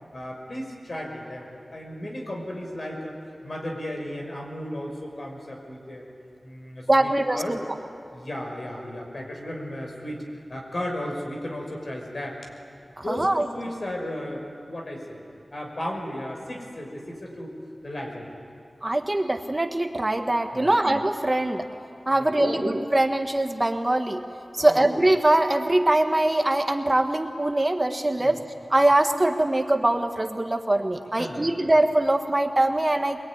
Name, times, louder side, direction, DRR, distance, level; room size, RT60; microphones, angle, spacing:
voice 1, 0.1-3.2 3.4-6.1 6.4-7.6 8.1-10.2 10.5-12.4 13.0-15.2 15.5-17.5 17.8-18.3 20.5-20.8 22.2-22.6 24.6-24.8 28.2-28.3 31.2-31.5, left 1 dB, 55° left, 1 dB, 5.6 m, -35 dB
voice 2, 6.9-7.6 13.1-13.5 18.8-21.7 22.1-24.2 24.5-28.4 28.7-33.3, right 1 dB, 30° right, 5 dB, 1.4 m, -22 dB
23.5 x 22.0 x 9.8 m, 2.5 s
wide cardioid pair, 70°, 0 cm